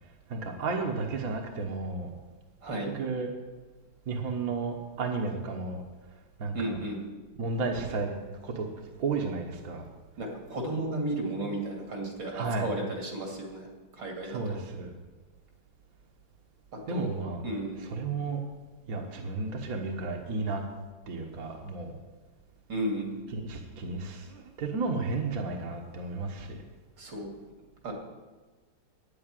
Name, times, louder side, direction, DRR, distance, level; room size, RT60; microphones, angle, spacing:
voice 1, 0.3-2.2 2.8-3.3 4.1-5.8 6.4-6.8 7.4-8.2 8.4-8.7 9.0-9.9 12.3-12.7 14.2-14.9 16.9-17.4 17.8-18.4 18.9-20.6 21.1-22.0 23.3-26.6, right 3 dB, 50° right, 1 dB, 1.6 m, -33 dB
voice 2, 6.5-7.0 10.2-13.7 14.0-14.6 16.9-17.1 17.4-17.8 22.7-23.1 27.0-27.3 27.8-27.9, right 1 dB, 75° right, 0 dB, 3.1 m, -33 dB
9.3 x 8.7 x 9.1 m, 1.3 s
omnidirectional pair, 2.1 m